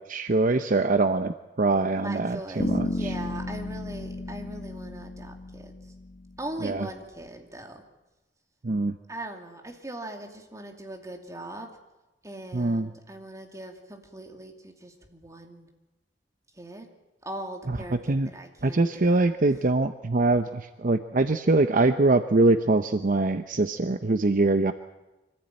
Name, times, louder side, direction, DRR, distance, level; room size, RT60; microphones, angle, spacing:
voice 1, 0.1-2.9 6.6-6.9 8.6-8.9 12.5-12.9 18.1-18.3 18.6-24.7, right 2 dB, 50° right, 9 dB, 0.7 m, -23 dB
voice 2, 2.0-5.9 6.4-7.8 9.1-11.7 12.2-15.7 16.5-16.9 17.2-19.7, right 1 dB, 20° right, 3 dB, 2.6 m, -40 dB
Bass guitar, 2.6-6.5, left 1 dB, 50° left, 1.3 m, -33 dB
24.5 x 15.0 x 8.9 m, 1.0 s
head